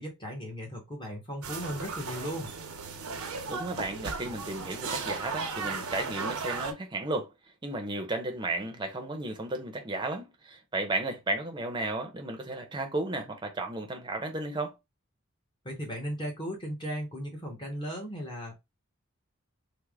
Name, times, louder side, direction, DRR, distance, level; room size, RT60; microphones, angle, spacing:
voice 1, 0.0-2.5 15.6-18.5, equal, 20° left, 0.9 m, -36 dB
sound 1, 1.4-6.7, right 4 dB, 90° right, 0.7 m, -36 dB
voice 2, 3.5-7.3 7.6-14.7, right 2 dB, 20° right, 0.6 m, -34 dB
3.3 x 2.1 x 3.4 m
head